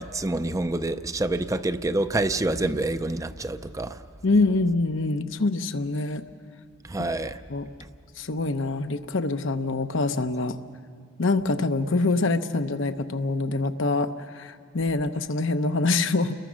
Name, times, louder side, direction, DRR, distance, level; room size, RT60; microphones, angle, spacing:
voice 1, 0.0-4.0 6.9-7.4, right 2 dB, 15° right, 10 dB, 0.5 m, -27 dB
voice 2, 4.2-6.2 7.5-7.7 8.2-10.6 11.2-16.4, left 3 dB, 70° left, 8 dB, 0.8 m, -25 dB
29.5 x 21.5 x 6.3 m, 2.1 s
head